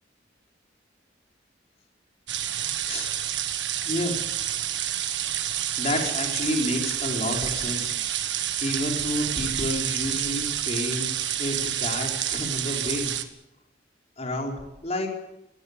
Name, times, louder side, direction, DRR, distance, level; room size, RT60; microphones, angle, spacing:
sound 1, 2.3-13.2, right 11 dB, 75° right, 1.8 m, -29 dB
voice 1, 3.8-4.2 5.6-7.9 8.6-11.1 11.4-13.1 14.2-14.6 14.8-15.2, left 1 dB, 35° left, 1 dB, 4.9 m, -30 dB
21.0 x 18.0 x 8.5 m, 0.86 s
head